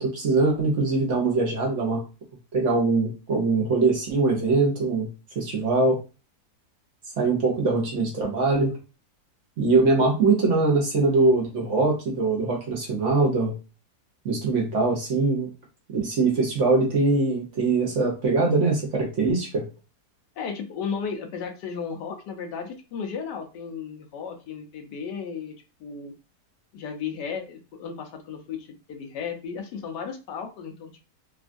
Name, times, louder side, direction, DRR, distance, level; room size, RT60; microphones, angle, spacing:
voice 1, 0.0-2.1 2.5-6.0 7.0-8.8 9.6-13.6 14.2-15.5 15.9-19.7, right 3 dB, 55° right, 0 dB, 0.9 m, -22 dB
voice 2, 20.4-25.5 25.8-26.1 26.7-31.1, left 6 dB, 90° left, 4 dB, 1.3 m, -34 dB
3.3 x 2.3 x 2.5 m, 0.31 s
omnidirectional pair, 1.8 m